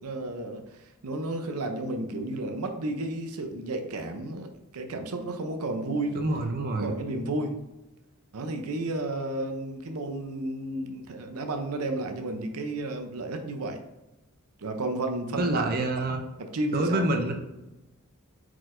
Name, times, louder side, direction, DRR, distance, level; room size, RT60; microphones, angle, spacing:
voice 1, 0.0-6.2 6.8-7.6 8.3-13.8 14.6-16.1 16.4-17.1, right 2 dB, 90° right, 5 dB, 0.7 m, -32 dB
voice 2, 6.1-6.9 15.4-16.2 16.7-17.3, right 2 dB, 45° right, 4 dB, 0.6 m, -27 dB
4.6 x 4.0 x 2.6 m, 1.0 s
head